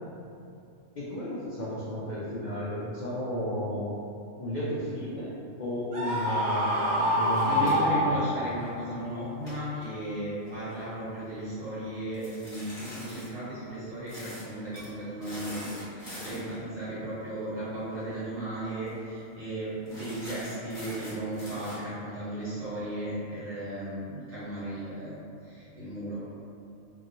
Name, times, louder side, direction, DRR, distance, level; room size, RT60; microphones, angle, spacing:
voice 1, 1.0-3.9 4.4-5.3 5.6-8.2, left 1 dB, 70° left, -8 dB, 0.4 m, -33 dB
Screaming, 5.9-8.6, equal, 50° right, 0.8 m, -26 dB
sound 1, 7.3-8.8 9.3-10.8 12.1-13.3 14.1-14.5 14.7-14.9 15.2-16.6 17.9-18.2 18.5-18.6 18.9-19.2 19.9-21.7, equal, 30° left, 1.0 m, -43 dB
voice 2, 7.4-26.2, right 1 dB, 75° right, -12 dB, 1.6 m, -35 dB
2.8 x 2.7 x 2.5 m, 2.6 s
omnidirectional pair, 1.3 m